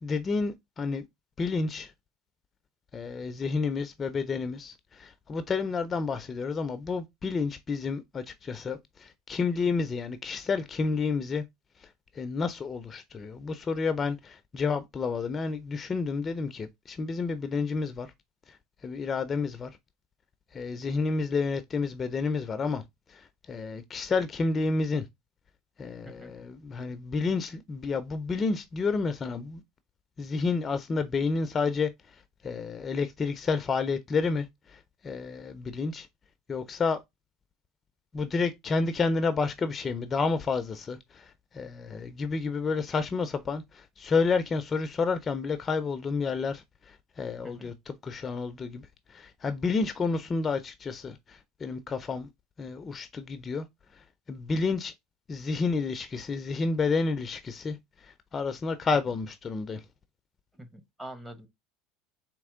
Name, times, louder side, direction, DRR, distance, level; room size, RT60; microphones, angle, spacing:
voice 1, 0.0-1.0 1.4-1.9 2.9-11.4 11.8-18.1 18.5-18.6 18.8-19.8 20.5-22.8 23.1-25.1 25.8-29.6 30.2-36.1 36.5-37.0 38.1-52.3 52.6-53.7 53.9-54.9 55.3-59.9, left 4 dB, 30° left, 0.5 m, -30 dB
voice 2, 60.5-61.5, right 1 dB, 10° right, 0.9 m, -44 dB
4.2 x 2.9 x 3.6 m
supercardioid pair, 100°, 0 cm